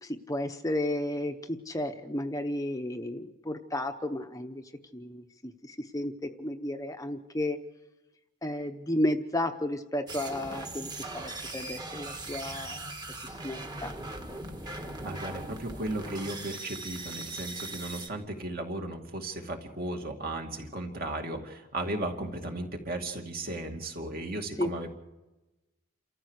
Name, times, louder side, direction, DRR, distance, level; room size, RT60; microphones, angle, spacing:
voice 1, 0.0-4.6 4.9-7.6 8.4-12.9 13.2-13.9 24.6-24.7, left 1 dB, 15° left, 6 dB, 0.8 m, -33 dB
sound 1, 10.1-18.1, right 2 dB, 20° right, 1.6 m, -40 dB
voice 2, 14.6-24.9, right 1 dB, 45° right, 3 dB, 2.5 m, -36 dB
28.5 x 14.0 x 6.5 m, 1.1 s
head